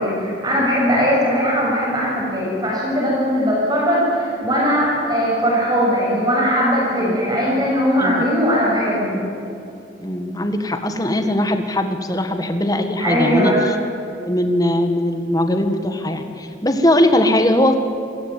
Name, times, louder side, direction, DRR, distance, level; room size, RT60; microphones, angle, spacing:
voice 1, 0.0-9.2 13.0-13.6, equal, 20° right, -4 dB, 6.8 m, -19 dB
voice 2, 10.0-13.8 14.2-17.8, left 1 dB, 20° left, 7 dB, 1.7 m, -20 dB
27.0 x 15.5 x 9.1 m, 2.7 s
head